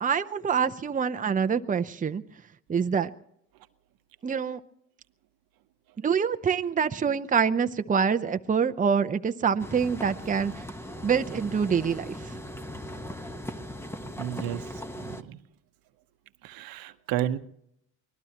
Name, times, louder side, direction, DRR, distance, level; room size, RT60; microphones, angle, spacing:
voice 1, 0.0-2.2 2.7-3.1 4.2-4.6 6.0-10.5 11.0-12.2, right 6 dB, 20° right, 9 dB, 0.7 m, -25 dB
sound 1, 9.6-15.2, equal, 5° left, 1.1 m, -39 dB
voice 2, 14.2-14.6 15.0-15.4 16.4-17.4, right 11 dB, 75° right, 10 dB, 1.0 m, -31 dB
25.0 x 19.0 x 3.0 m, 0.74 s
cardioid pair, 85°, 35 cm